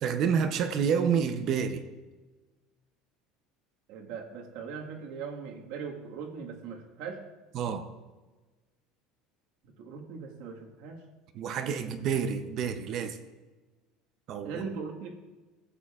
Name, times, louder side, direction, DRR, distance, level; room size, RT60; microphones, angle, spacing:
voice 1, 0.0-1.8 7.5-7.9 11.3-13.2 14.3-14.6, right 7 dB, 40° right, 9 dB, 0.6 m, -28 dB
voice 2, 3.9-7.2 9.8-11.0 14.4-15.1, right 5 dB, 65° right, 0 dB, 1.5 m, -39 dB
15.5 x 8.6 x 2.4 m, 1.2 s
cardioid pair, 175°, 0 cm